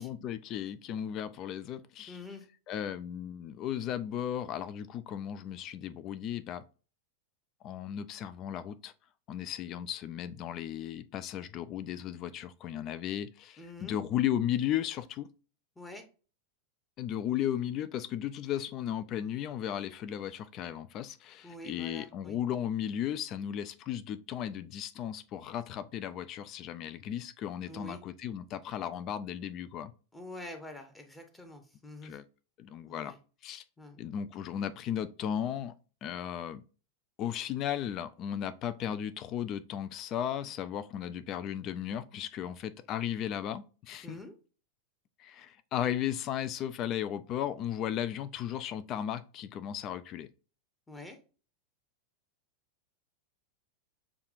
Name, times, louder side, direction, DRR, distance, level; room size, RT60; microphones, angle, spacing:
voice 1, 0.0-2.2 2.7-6.6 7.6-8.9 9.3-15.3 17.0-29.9 32.0-32.2 32.6-33.1 33.4-33.6 34.0-35.7 36.0-36.6 37.2-44.2 45.2-50.3, left 10 dB, 35° left, 0.3 m, -35 dB
voice 2, 2.1-2.4 13.6-14.0 15.8-16.0 21.4-22.4 27.7-28.0 30.1-32.2 32.9-33.2 33.8-34.0 44.0-44.3 50.9-51.2, left 1 dB, 10° left, 0.8 m, -46 dB
6.8 x 2.3 x 2.5 m
figure-of-eight pair, 90°, 0 cm